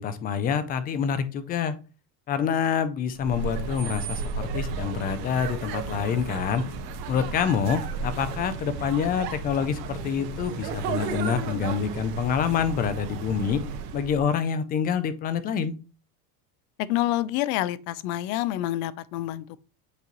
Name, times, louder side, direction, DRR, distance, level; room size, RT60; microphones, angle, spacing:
voice 1, 0.0-1.8 2.3-6.6 7.1-13.6 13.9-15.7, left 7 dB, 20° left, 0.3 m, -27 dB
sound 1, 3.1-14.3, right 5 dB, 85° right, 1.4 m, -34 dB
voice 2, 16.8-19.6, left 15 dB, 65° left, 0.6 m, -28 dB
8.2 x 3.0 x 3.9 m
supercardioid pair, 140°, 47 cm